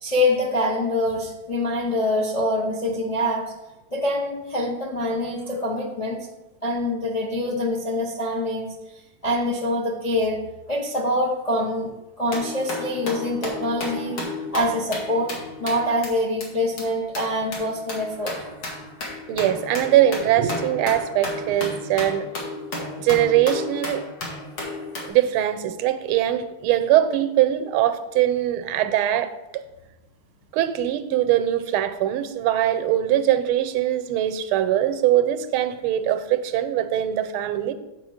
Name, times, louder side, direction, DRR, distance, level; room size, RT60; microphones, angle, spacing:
voice 1, 0.0-3.5 3.9-6.3 6.6-10.4 10.7-18.5, left 1 dB, 50° left, 0.4 m, -25 dB
sound 1, 12.3-16.1 16.4-16.5 16.8-16.9 17.1-25.1, left 2 dB, 70° left, 2.5 m, -33 dB
voice 2, 19.3-22.3 23.0-24.1 25.1-29.3 30.5-37.7, right 12 dB, 85° right, 1.5 m, -22 dB
8.2 x 4.4 x 6.4 m
omnidirectional pair, 2.4 m